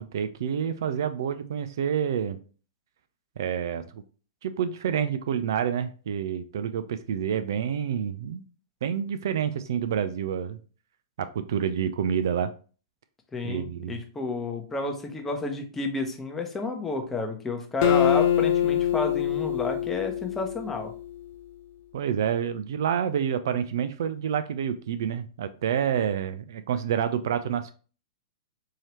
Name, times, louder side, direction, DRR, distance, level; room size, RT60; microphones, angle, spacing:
voice 1, 0.0-2.4 3.4-4.0 4.4-8.4 8.8-10.6 11.2-12.5 13.4-14.0 21.9-27.7, right 8 dB, 60° right, 11 dB, 0.3 m, -28 dB
voice 2, 13.3-20.9, left 3 dB, 15° left, 3 dB, 0.8 m, -31 dB
Acoustic guitar, 17.8-21.2, left 10 dB, 50° left, 0.4 m, -24 dB
4.6 x 2.8 x 2.9 m, 0.38 s
figure-of-eight pair, 105°, 2 cm